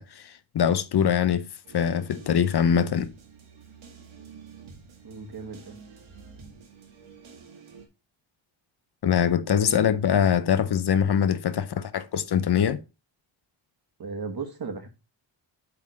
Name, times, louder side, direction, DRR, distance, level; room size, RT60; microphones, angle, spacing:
voice 1, 0.0-1.4 1.7-3.1 9.0-12.8, left 8 dB, 55° left, 0.6 m, -23 dB
sound 1, 1.6-7.9, right 5 dB, 85° right, 2.1 m, -49 dB
voice 2, 5.0-5.7 9.5-10.0 14.0-14.9, right 4 dB, 50° right, 1.5 m, -36 dB
8.1 x 3.6 x 4.7 m
wide cardioid pair, 165°, 47 cm